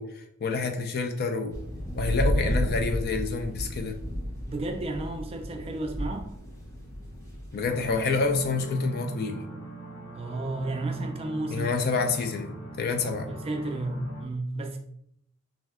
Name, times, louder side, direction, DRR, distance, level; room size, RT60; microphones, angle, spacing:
voice 1, 0.0-1.5 1.9-4.0 7.5-9.4 11.5-13.3, left 4 dB, 50° left, 5 dB, 0.4 m, -28 dB
sound 1, 1.5-8.6, equal, 15° left, 0.7 m, -32 dB
voice 2, 4.3-6.4 10.1-11.8 13.3-14.8, right 2 dB, 30° right, 3 dB, 0.3 m, -33 dB
sound 2, 7.6-14.2, equal, 80° left, 1.4 m, -40 dB
2.6 x 2.1 x 3.4 m, 0.72 s
head